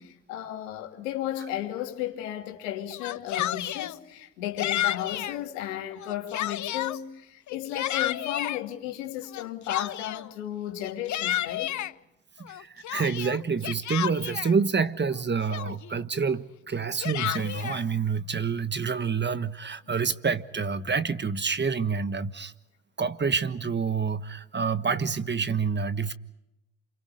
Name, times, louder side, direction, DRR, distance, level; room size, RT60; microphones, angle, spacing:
voice 1, 0.0-11.8, left 12 dB, 85° left, 2.8 m, -34 dB
Yell, 2.9-3.9 4.6-5.4 5.9-7.0 7.5-8.6 9.3-10.3 10.8-11.9 12.5-14.5 15.1-15.2 15.5-16.0 16.7-17.8, left 13 dB, 50° left, 0.8 m, -31 dB
voice 2, 12.4-22.5 23.0-26.1, right 5 dB, 30° right, 1.4 m, -28 dB
29.5 x 27.5 x 5.0 m
hypercardioid pair, 60°, 37 cm